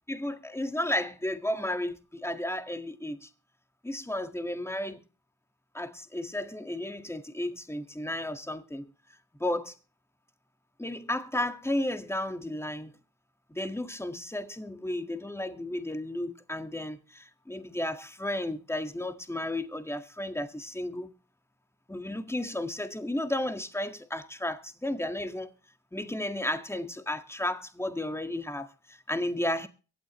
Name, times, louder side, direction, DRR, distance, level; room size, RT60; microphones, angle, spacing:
voice 1, 0.1-3.3 3.8-5.0 5.7-8.9 9.4-9.7 10.8-12.9 13.5-21.1 21.9-25.5 25.9-29.7, left 1 dB, 5° left, 1.8 m, -33 dB
23.5 x 8.4 x 3.1 m
cardioid pair, 70°, 35 cm